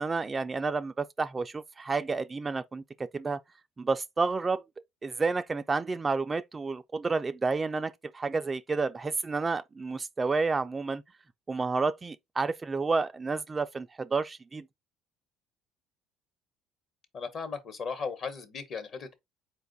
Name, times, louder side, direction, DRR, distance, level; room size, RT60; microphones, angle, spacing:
voice 1, 0.0-2.8 3.1-3.4 3.8-4.6 5.0-11.0 11.5-14.6, right 4 dB, 25° right, 0.3 m, -30 dB
voice 2, 17.1-19.1, left 5 dB, 50° left, 1.1 m, -36 dB
4.4 x 2.3 x 3.9 m
cardioid pair, 110°, 0 cm